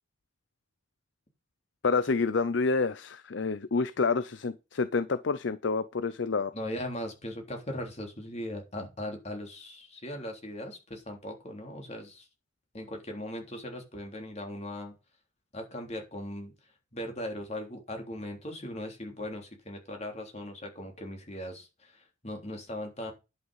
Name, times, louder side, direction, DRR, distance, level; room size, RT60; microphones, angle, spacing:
voice 1, 1.8-6.5, left 4 dB, 70° left, 0.6 m, -28 dB
voice 2, 6.5-12.3 12.7-15.0 15.5-16.5 16.9-23.1, left 1 dB, 35° left, 3.5 m, -39 dB
10.5 x 6.3 x 5.6 m
head